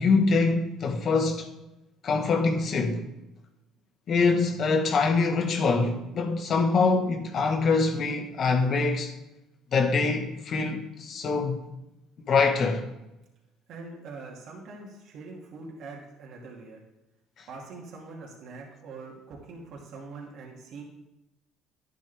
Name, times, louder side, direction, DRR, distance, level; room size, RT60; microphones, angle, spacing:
voice 1, 0.0-1.5 2.0-3.0 4.1-9.1 9.7-11.6 12.3-12.8, left 4 dB, 50° left, 1.6 m, -24 dB
voice 2, 13.7-16.8 17.5-20.8, right 3 dB, 65° right, 2.4 m, -43 dB
11.5 x 9.6 x 3.5 m
supercardioid pair, 95°, 0 cm